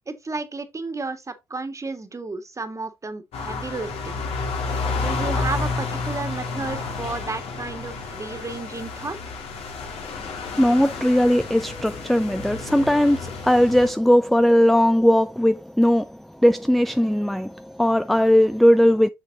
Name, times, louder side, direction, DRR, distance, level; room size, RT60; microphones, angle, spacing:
voice 1, 0.1-4.2 5.0-9.2, right 3 dB, 30° right, 1.9 m, -32 dB
sound 1, 3.3-13.9, left 4 dB, 65° left, 2.2 m, -30 dB
voice 2, 10.5-19.1, equal, ahead, 0.5 m, -19 dB
7.3 x 6.4 x 2.8 m
hypercardioid pair, 50°, 11 cm